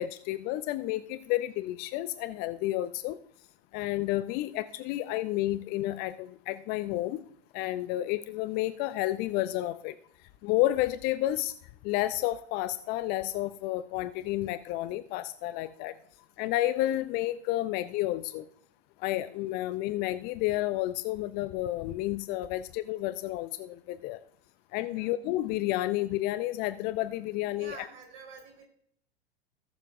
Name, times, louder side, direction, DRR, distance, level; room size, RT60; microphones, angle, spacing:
voice 1, 0.0-3.2 3.7-7.3 7.5-10.0 10.4-11.5 11.8-16.0 16.4-18.5 19.0-24.2 24.7-27.9, left 15 dB, 30° left, 14 dB, 0.4 m, -31 dB
voice 2, 27.6-28.7, right 5 dB, 50° right, 2 dB, 3.8 m, -47 dB
19.0 x 6.9 x 2.6 m, 0.67 s
figure-of-eight pair, 90°, 31 cm